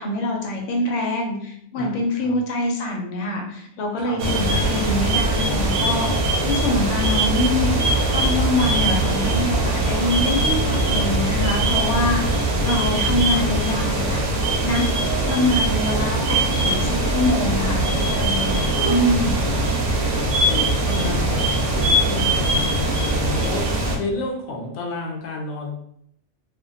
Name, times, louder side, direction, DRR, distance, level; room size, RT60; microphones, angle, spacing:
voice 1, 0.0-12.2 12.6-14.2 14.6-14.9 15.3-17.8 18.1-19.3, left 1 dB, 90° left, 1 dB, 0.9 m, -25 dB
voice 2, 1.8-2.4 4.0-4.2 19.3-23.6 24.0-25.7, left 3 dB, 50° left, 0 dB, 0.5 m, -31 dB
sound 1, 4.2-24.0, right 1 dB, 65° right, 0.7 m, -21 dB
2.2 x 2.1 x 2.6 m, 0.71 s
omnidirectional pair, 1.2 m